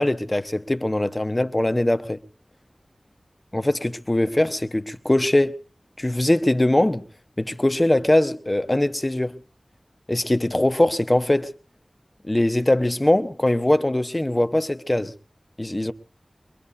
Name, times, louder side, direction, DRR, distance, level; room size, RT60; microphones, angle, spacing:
voice 1, 0.0-2.2 3.5-5.6 6.0-7.0 7.4-9.4 10.1-11.5 12.2-15.1 15.6-15.9, left 1 dB, 25° left, 0.9 m, -21 dB
24.5 x 21.5 x 2.7 m
wide cardioid pair, 50°, 0 cm